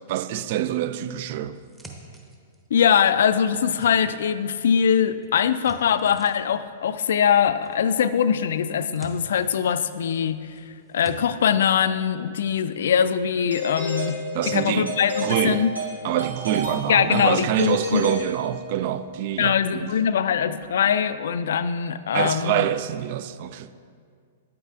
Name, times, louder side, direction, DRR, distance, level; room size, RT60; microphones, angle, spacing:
voice 1, 0.1-1.6 14.3-14.9 15.2-15.7 16.0-19.9 22.1-23.7, right 11 dB, 50° right, 0.3 m, -26 dB
sound 1, 1.5-2.8 3.3-4.7 5.0-6.7 7.6-8.2 8.5-10.2 10.5-11.2, right 3 dB, 10° right, 0.9 m, -47 dB
voice 2, 2.7-10.6 10.9-15.7 16.9-18.0 19.4-22.7, left 8 dB, 65° left, 0.3 m, -22 dB
Doorbell, 13.5-18.9, equal, 85° right, 2.0 m, -31 dB
9.3 x 8.5 x 2.5 m
figure-of-eight pair, 105°, 0 cm